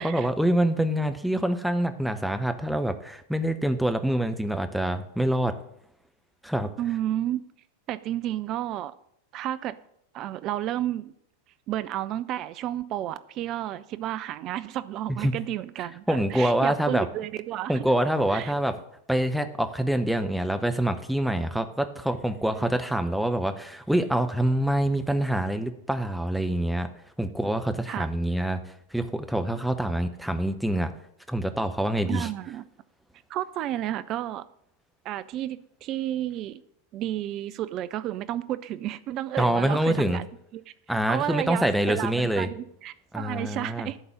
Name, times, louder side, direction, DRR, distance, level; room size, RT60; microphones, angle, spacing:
voice 1, 0.0-5.6 6.4-6.7 15.1-15.3 16.1-17.1 17.7-18.7 19.1-26.9 27.2-28.6 28.9-30.9 31.3-32.3 39.4-40.2 40.9-42.5 43.1-43.9, right 1 dB, ahead, 0.8 m, -25 dB
voice 2, 6.8-7.4 7.9-8.9 9.3-9.7 10.1-11.1 11.7-17.8 18.3-18.5 27.9-28.1 32.1-32.6 33.3-34.4 35.0-36.6 36.9-40.3 40.5-40.6 41.1-44.0, right 12 dB, 35° right, 0.5 m, -31 dB
11.0 x 3.9 x 7.1 m
figure-of-eight pair, 90°, 0 cm